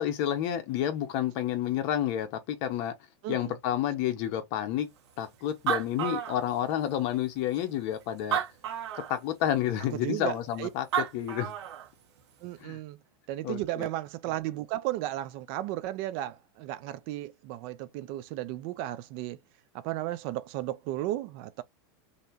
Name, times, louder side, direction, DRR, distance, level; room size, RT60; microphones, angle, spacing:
voice 1, 0.0-2.9 3.3-4.9 5.2-8.4 9.1-11.5 12.6-12.8 13.4-13.9, left 11 dB, 40° left, 1.1 m, -30 dB
Animal, 5.2-5.3 5.5-6.9 7.6-7.7 8.2-9.2 10.6-10.7 10.9-11.9, right 10 dB, 80° right, 1.4 m, -31 dB
voice 2, 9.9-10.7 12.4-13.0 13.3-19.4 19.7-21.6, right 15 dB, 35° right, 0.3 m, -34 dB
5.4 x 2.9 x 2.7 m
supercardioid pair, 165°, 14 cm